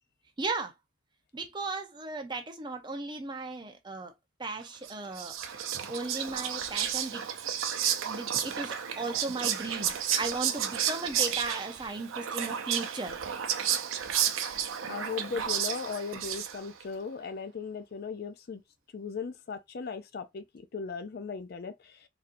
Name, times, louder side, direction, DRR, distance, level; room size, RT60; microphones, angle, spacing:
voice 1, 0.4-0.7 1.3-4.1 4.4-5.4 5.9-7.2 8.0-9.9 10.2-13.2, right 3 dB, 20° right, 0.6 m, -36 dB
Whispering, 4.8-16.8, right 9 dB, 80° right, 0.6 m, -32 dB
voice 2, 14.9-18.6 18.9-22.0, left 5 dB, 50° left, 0.4 m, -37 dB
4.1 x 2.7 x 2.5 m
head